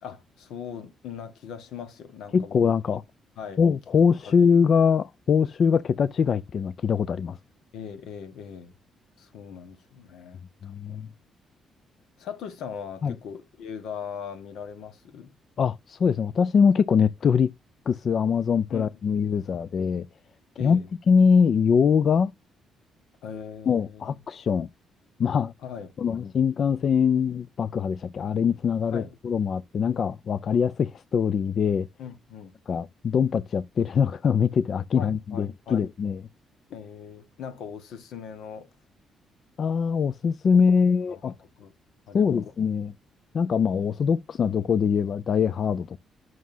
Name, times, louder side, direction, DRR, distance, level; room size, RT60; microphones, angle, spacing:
voice 1, 0.0-2.6 2.9-3.0 3.4-3.6 4.2-4.4 7.7-8.8 9.2-11.1 12.2-15.3 18.7-19.5 20.6-20.9 23.2-24.2 25.6-26.2 28.9-29.1 32.0-32.6 35.0-35.9 36.7-38.7 40.7-41.7 42.1-42.5, left 7 dB, 80° left, 1.4 m, -40 dB
voice 2, 2.3-3.0 3.6-7.4 10.6-11.1 13.0-13.1 15.6-17.5 17.9-20.1 20.6-20.8 21.1-22.3 23.7-24.7 25.2-25.5 26.0-31.9 32.7-36.2 39.6-41.3 42.1-42.9 43.3-46.0, left 6 dB, 55° left, 0.4 m, -23 dB
9.2 x 6.2 x 2.7 m
cardioid pair, 90°, 0 cm